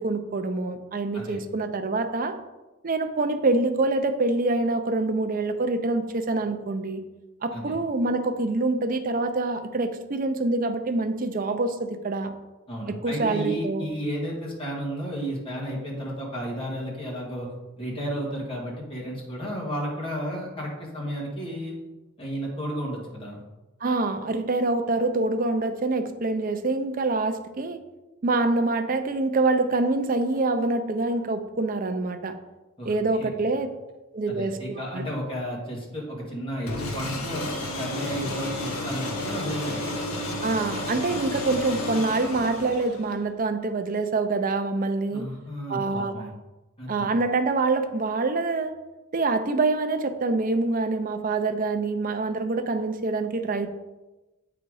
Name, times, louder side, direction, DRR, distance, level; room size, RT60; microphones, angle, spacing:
voice 1, 0.0-2.4 2.8-7.0 7.4-12.3 12.9-13.8 23.8-27.8 28.2-32.3 32.8-33.7 34.1-34.6 34.9-35.0 40.4-45.3 45.7-46.3 46.9-48.7 49.1-53.7, right 3 dB, 40° right, 8 dB, 0.5 m, -25 dB
voice 2, 12.7-17.5 17.8-21.8 22.2-23.4 32.8-32.9 33.2-33.3 34.3-37.5 37.8-39.8 45.1-46.3 46.8-47.1, equal, 25° left, -3 dB, 1.8 m, -32 dB
sound 1, 36.7-43.2, left 1 dB, 90° left, 1.5 m, -32 dB
8.1 x 4.0 x 4.8 m, 1.1 s
head